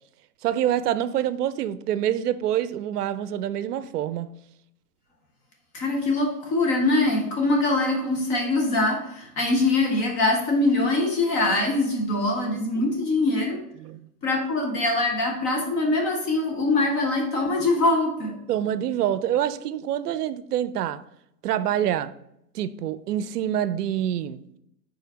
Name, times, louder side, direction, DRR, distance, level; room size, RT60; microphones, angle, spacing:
voice 1, 0.4-4.3 12.8-12.9 13.8-14.0 18.5-21.0 21.4-22.1 22.5-24.4, right 11 dB, 75° right, 0.6 m, -26 dB
voice 2, 5.7-13.6 14.2-18.4, left 2 dB, 15° left, 0.5 m, -23 dB
4.9 x 4.4 x 5.2 m
hypercardioid pair, 145°, 47 cm